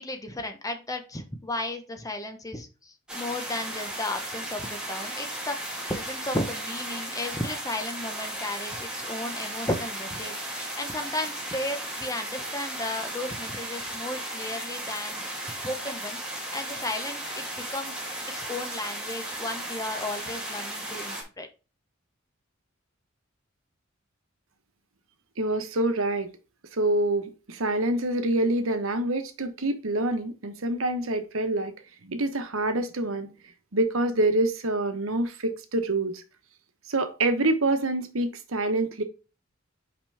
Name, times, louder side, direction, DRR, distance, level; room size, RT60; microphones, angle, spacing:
voice 1, 0.0-21.5, left 1 dB, 15° left, 1.0 m, -34 dB
sound 1, 3.1-21.2, right 1 dB, 5° right, 2.0 m, -35 dB
voice 2, 25.4-26.3 26.8-31.7 32.0-33.3 33.7-36.2 36.9-39.0, right 2 dB, 80° right, 1.1 m, -26 dB
5.8 x 5.3 x 3.4 m
head